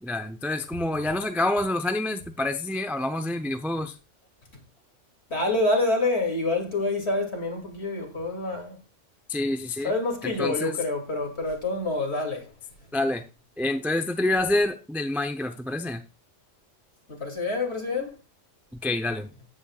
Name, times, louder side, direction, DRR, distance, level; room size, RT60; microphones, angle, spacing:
voice 1, 0.0-3.9 9.3-9.9 10.2-10.8 12.9-13.2 13.6-16.0 18.8-19.3, left 2 dB, ahead, 0.5 m, -27 dB
voice 2, 5.3-8.8 9.8-12.4 17.1-18.1, left 2 dB, 60° left, 2.9 m, -27 dB
14.5 x 8.7 x 2.4 m
omnidirectional pair, 1.3 m